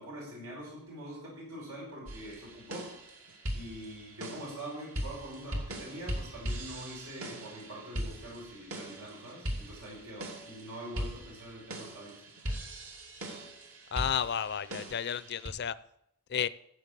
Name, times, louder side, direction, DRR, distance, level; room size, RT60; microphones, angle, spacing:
voice 1, 0.0-2.9 3.5-12.3, equal, 90° right, -3 dB, 5.7 m, -44 dB
sound 1, 2.1-15.5, equal, 75° right, 2.5 m, -40 dB
voice 2, 13.9-15.7 16.3-16.5, left 8 dB, 50° left, 17 dB, 0.5 m, -32 dB
14.0 x 7.8 x 6.8 m, 0.77 s
head